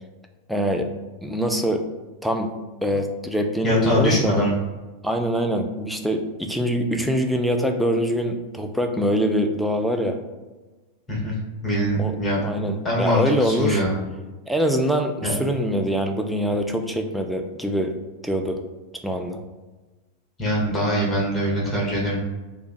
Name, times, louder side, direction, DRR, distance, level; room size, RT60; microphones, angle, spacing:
voice 1, 0.5-0.9 1.2-1.9 2.2-2.5 2.8-4.4 5.0-10.2 12.0-12.1 12.4-13.8 14.5-18.0 18.2-18.6 19.0-19.4, equal, ahead, 3 dB, 0.4 m, -24 dB
voice 2, 3.6-4.5 11.1-11.3 11.6-12.4 12.8-13.9 15.2-15.4 20.4-22.2, equal, 20° left, -5 dB, 1.1 m, -22 dB
2.8 x 2.2 x 4.1 m, 1.2 s
figure-of-eight pair, 90°, 0 cm